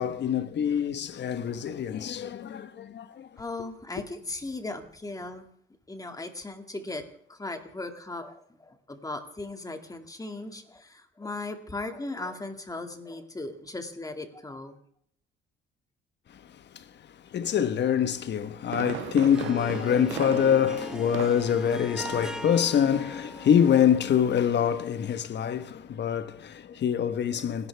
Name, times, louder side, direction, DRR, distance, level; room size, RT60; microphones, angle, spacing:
voice 1, 0.0-3.3 16.7-16.8 17.3-27.7, left 8 dB, 60° left, 1.3 m, -25 dB
voice 2, 3.4-5.5 5.9-14.8, left 2 dB, 15° left, 2.3 m, -37 dB
Fireworks, 18.2-21.7 22.0-22.4 22.7-22.8, right 14 dB, 80° right, 0.6 m, -38 dB
Harp, 19.0-24.8, right 1 dB, 5° right, 1.1 m, -40 dB
29.5 x 11.5 x 3.5 m
cardioid pair, 90°, 20 cm